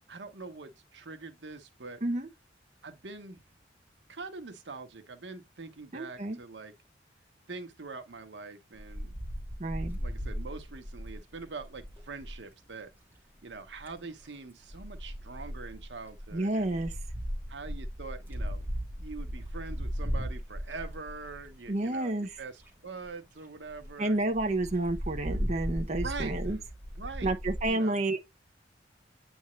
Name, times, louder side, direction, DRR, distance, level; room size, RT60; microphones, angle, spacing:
voice 1, 0.1-2.0 2.8-3.4 4.1-6.7 7.5-9.1 9.6-12.9 13.4-16.8 17.5-18.7 19.0-24.3 26.0-26.6 27.0-27.3 27.7-28.0, right 4 dB, 85° right, 1.0 m, -44 dB
voice 2, 5.9-6.4 9.6-10.0 16.3-16.9 21.7-22.4 24.0-26.6 27.2-28.2, right 2 dB, 40° right, 0.7 m, -30 dB
Wind, 8.8-12.4 13.5-14.0 14.7-21.7 22.3-22.4 22.6-22.7 23.0-23.1 23.4-23.5 23.7-23.9 24.3-27.7, equal, 10° right, 1.8 m, -37 dB
8.6 x 3.5 x 3.1 m
head